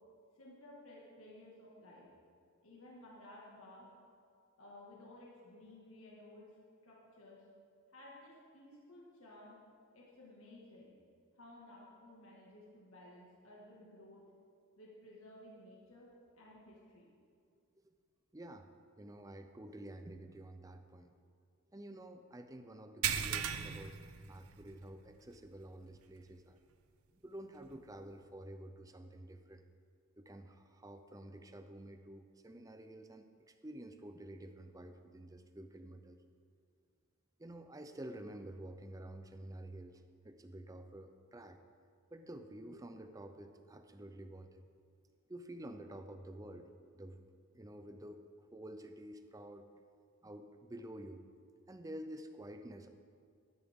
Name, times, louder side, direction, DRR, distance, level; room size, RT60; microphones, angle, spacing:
voice 1, 0.4-2.1 2.6-3.9 4.6-6.5 6.8-7.5 7.9-9.6 9.9-11.0 11.3-14.3 14.8-16.1 16.3-17.1, left 1 dB, 70° left, -4 dB, 2.1 m, -56 dB
voice 2, 18.3-18.7 19.0-21.1 21.7-24.0 24.2-26.6 27.1-29.6 30.2-36.2 37.4-41.6 42.1-44.6 45.3-47.2 47.5-49.6 50.2-51.2 51.7-52.9, right 1 dB, 15° right, 7 dB, 0.6 m, -50 dB
sound 1, 23.0-24.9 25.3-25.5 25.9-26.0 27.7-27.8, right 8 dB, 75° right, 0.6 m, -37 dB
14.0 x 11.0 x 3.7 m, 2.3 s
head